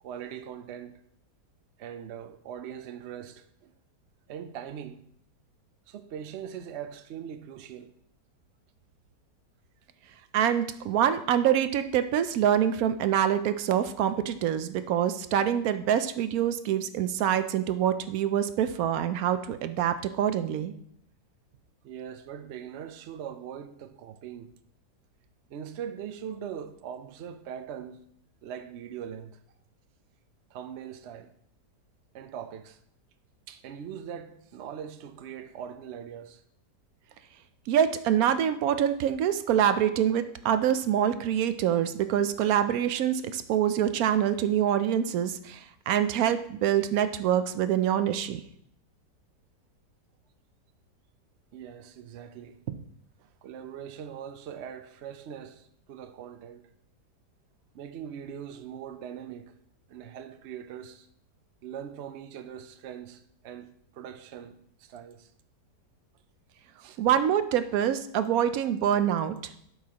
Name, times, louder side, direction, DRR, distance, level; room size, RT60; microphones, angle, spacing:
voice 1, 0.0-1.0 1.8-3.7 4.3-5.0 5.9-7.9 21.8-24.5 25.5-28.0 28.4-29.4 30.5-31.3 32.1-32.8 33.5-36.4 51.5-52.8 53.2-56.6 57.7-59.5 59.9-61.1 61.6-65.3 66.8-67.0, right 8 dB, 85° right, 0.6 m, -41 dB
voice 2, 10.3-20.7 37.7-48.4 67.0-69.4, right 10 dB, 70° right, 0.9 m, -25 dB
12.0 x 5.6 x 2.9 m
omnidirectional pair, 1.9 m